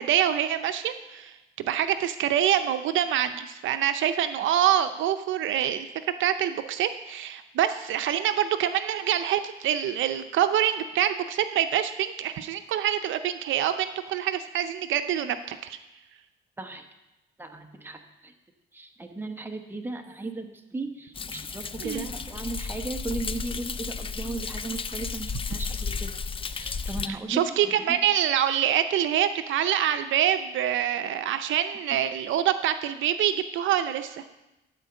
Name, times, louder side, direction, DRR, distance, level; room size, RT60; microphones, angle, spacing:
voice 1, 0.0-5.9 6.2-15.8 21.8-22.1 27.3-34.2, right 10 dB, 75° right, 9 dB, 0.6 m, -25 dB
voice 2, 17.4-18.3 18.7-26.1 26.5-27.8, right 2 dB, 10° right, 5 dB, 1.1 m, -36 dB
Thunder, 21.2-27.1, left 5 dB, 25° left, 0.4 m, -33 dB
12.5 x 4.5 x 6.8 m, 0.97 s
cardioid pair, 90°, 20 cm